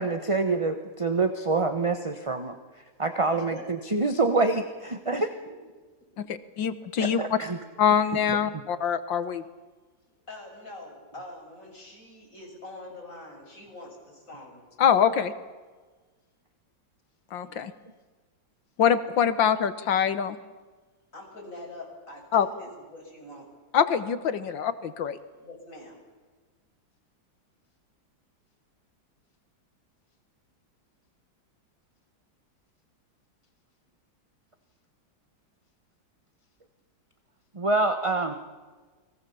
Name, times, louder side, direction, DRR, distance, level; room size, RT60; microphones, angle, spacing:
voice 1, 0.0-5.3 7.0-7.6 8.3-8.4 37.5-38.3, right 3 dB, 20° right, 8 dB, 0.9 m, -26 dB
voice 2, 6.2-7.2 7.8-9.4 14.8-15.3 17.3-17.7 18.8-20.4 22.3-22.5 23.7-25.2, left 8 dB, 75° left, 12 dB, 1.9 m, -24 dB
voice 3, 10.3-14.6 21.1-23.5 25.4-26.0, left 2 dB, 40° left, 0 dB, 7.1 m, -44 dB
29.5 x 22.0 x 7.1 m, 1.3 s
omnidirectional pair, 2.1 m